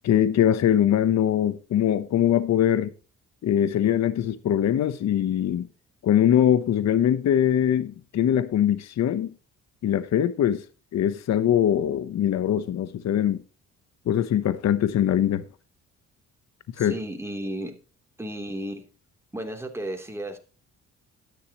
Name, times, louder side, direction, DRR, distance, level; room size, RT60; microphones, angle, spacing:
voice 1, 0.0-2.9 3.4-5.7 6.0-9.3 9.8-10.6 10.9-13.4 14.1-15.4 16.8-16.9, left 10 dB, 60° left, 0.9 m, -22 dB
voice 2, 16.7-17.8 18.2-18.9 19.3-20.4, right 1 dB, 10° right, 3.0 m, -33 dB
13.0 x 10.5 x 3.0 m
cardioid pair, 90°, 30 cm